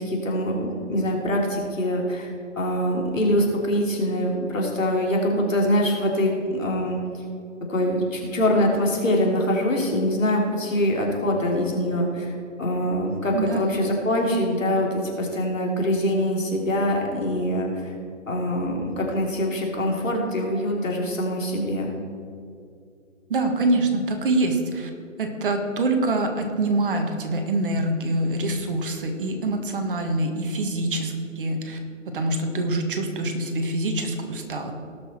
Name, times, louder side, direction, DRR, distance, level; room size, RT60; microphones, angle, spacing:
voice 1, 0.0-7.0 7.7-12.3 12.6-17.9 18.3-21.9, left 1 dB, 80° left, -1 dB, 3.3 m, -24 dB
voice 2, 13.3-13.8 23.3-24.9 25.2-31.8 32.1-34.7, right 2 dB, 45° right, 5 dB, 1.5 m, -25 dB
19.0 x 6.3 x 4.5 m, 2.5 s
figure-of-eight pair, 145°, 39 cm